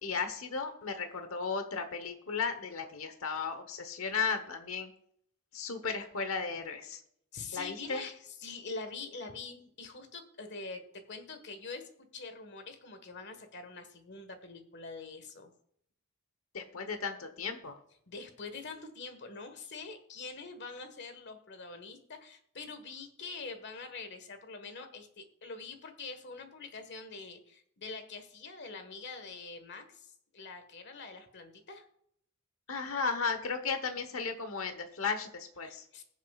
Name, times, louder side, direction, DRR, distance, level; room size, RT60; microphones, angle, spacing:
voice 1, 0.0-4.9 5.5-7.0 7.5-8.0 16.5-17.8 32.7-35.8, left 5 dB, 85° left, 8 dB, 1.1 m, -35 dB
voice 2, 7.3-15.5 18.1-31.9 35.6-36.0, left 4 dB, 55° left, 8 dB, 1.6 m, -45 dB
22.0 x 7.3 x 2.4 m, 0.70 s
head